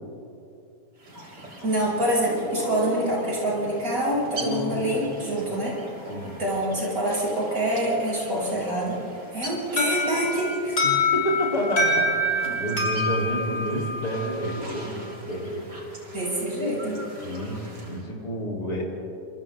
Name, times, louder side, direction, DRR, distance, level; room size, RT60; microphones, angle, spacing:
sound 1, 1.0-18.0, right 1 dB, 75° right, 4.3 m, -40 dB
voice 1, 1.2-5.8 6.4-9.0 9.3-10.8 16.1-17.0, right 1 dB, 50° right, -6 dB, 7.7 m, -26 dB
voice 2, 4.4-5.4 6.1-6.4 10.8-16.0 17.2-18.8, equal, 65° left, -3 dB, 4.4 m, -30 dB
Alarm, 9.8-14.6, left 1 dB, 50° left, 5.2 m, -26 dB
28.5 x 26.5 x 3.7 m, 2.8 s
omnidirectional pair, 1.8 m